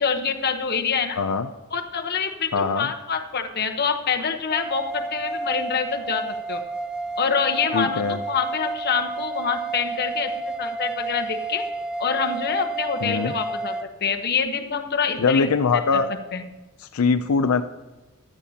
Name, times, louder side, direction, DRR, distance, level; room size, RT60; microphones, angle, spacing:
voice 1, 0.0-1.2 1.7-6.6 7.2-10.3 10.6-11.6 12.0-15.5 15.9-16.0 16.3-16.4, left 6 dB, 50° left, 5 dB, 1.0 m, -26 dB
voice 2, 1.2-1.5 2.5-2.9 7.7-8.2 13.0-13.3 15.2-16.1 16.8-17.6, left 5 dB, 85° left, 8 dB, 0.5 m, -22 dB
sound 1, 4.5-13.9, right 3 dB, 5° right, 0.3 m, -31 dB
15.5 x 12.0 x 2.8 m, 1.2 s
head